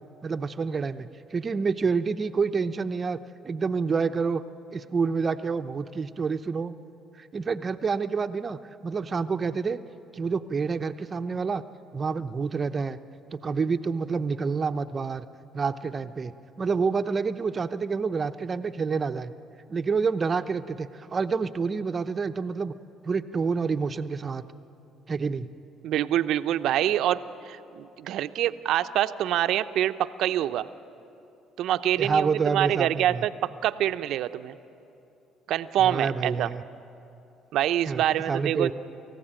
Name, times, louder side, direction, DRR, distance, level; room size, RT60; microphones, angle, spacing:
voice 1, 0.2-3.2 3.4-4.4 4.7-6.8 7.2-9.8 10.1-11.6 11.9-13.0 13.3-15.3 15.5-19.3 19.7-22.7 23.0-24.4 25.1-25.5 32.0-33.3 35.8-36.6 37.9-38.7, right 5 dB, 35° right, 9 dB, 0.8 m, -28 dB
voice 2, 25.8-30.7 31.6-34.5 35.5-36.5 37.5-38.7, right 12 dB, 70° right, 10 dB, 0.7 m, -26 dB
29.0 x 15.0 x 8.9 m, 2.8 s
supercardioid pair, 75°, 0 cm